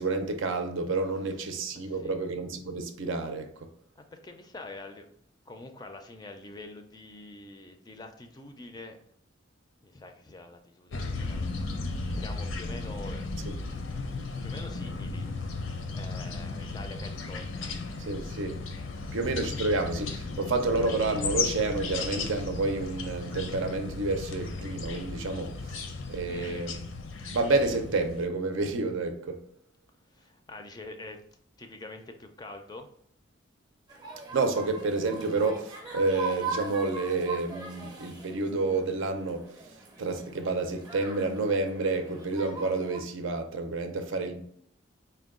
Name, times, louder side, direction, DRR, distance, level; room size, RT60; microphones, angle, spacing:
voice 1, 0.0-3.7 13.4-13.5 18.0-18.6 19.1-26.8 27.3-29.4 34.3-39.5 40.0-44.4, right 3 dB, 80° right, 0.6 m, -29 dB
voice 2, 1.7-2.2 4.0-5.1 5.5-9.0 9.8-13.3 13.7-13.8 14.4-15.3 15.9-17.8 26.2-26.8 30.1-31.2 31.6-32.9, left 2 dB, 20° left, 0.4 m, -45 dB
sound 1, 10.9-28.3, left 3 dB, 85° left, 0.6 m, -35 dB
sound 2, 33.9-43.0, right 3 dB, 20° right, 0.6 m, -41 dB
4.4 x 2.2 x 3.6 m
head